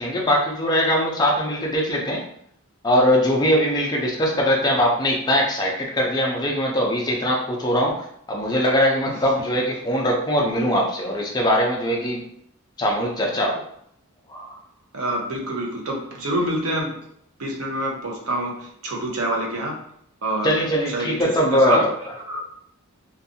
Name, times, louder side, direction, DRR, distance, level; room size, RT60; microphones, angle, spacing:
voice 1, 0.0-2.2 2.8-12.2 12.8-13.6 14.3-14.6 20.4-21.9, equal, 20° left, -2 dB, 0.4 m, -21 dB
voice 2, 14.9-17.0 17.4-19.8 20.2-20.5 20.9-21.9 22.1-22.4, right 1 dB, 75° right, -1 dB, 0.7 m, -26 dB
2.6 x 2.3 x 2.6 m, 0.71 s
head